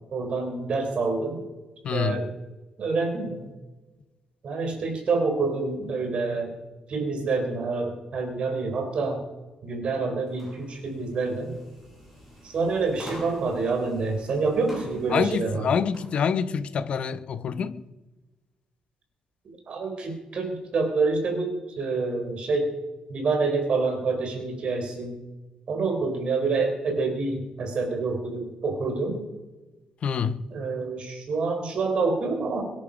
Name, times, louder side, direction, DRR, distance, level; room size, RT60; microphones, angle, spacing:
voice 1, 0.1-1.4 1.9-2.3 2.8-3.5 4.4-6.6 6.9-9.2 9.6-11.6 12.4-15.7 19.5-22.7 23.1-25.2 25.7-29.2 30.5-32.6, right 3 dB, 50° right, 3.8 m, -27 dB
voice 2, 1.8-2.2 15.1-17.8 30.0-30.4, left 7 dB, 50° left, 0.8 m, -26 dB
sound 1, 10.3-16.1, equal, 5° right, 6.6 m, -46 dB
23.0 x 10.5 x 5.2 m
cardioid pair, 145°, 2 cm